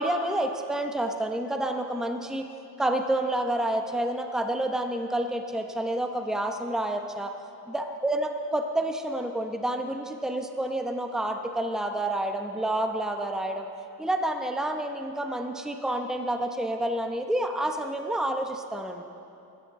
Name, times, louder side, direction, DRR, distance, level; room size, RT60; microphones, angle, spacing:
voice 1, 0.0-2.5 2.8-7.3 7.7-13.7 14.0-19.0, right 1 dB, ahead, 4 dB, 0.8 m, -29 dB
20.0 x 13.0 x 3.7 m, 2.8 s
cardioid pair, 115°, 38 cm